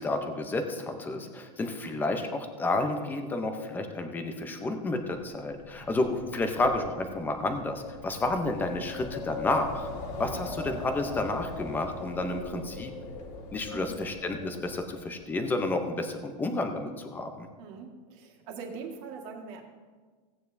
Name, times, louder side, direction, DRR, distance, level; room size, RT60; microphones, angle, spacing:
voice 1, 0.0-9.9 10.2-12.9 13.5-17.5, left 2 dB, 10° left, 6 dB, 0.6 m, -31 dB
Wind, 5.1-15.2, left 3 dB, 75° left, 1.9 m, -41 dB
voice 2, 17.6-19.6, right 5 dB, 45° right, 0 dB, 1.8 m, -42 dB
16.5 x 8.9 x 2.6 m, 1.4 s
supercardioid pair, 170°, 21 cm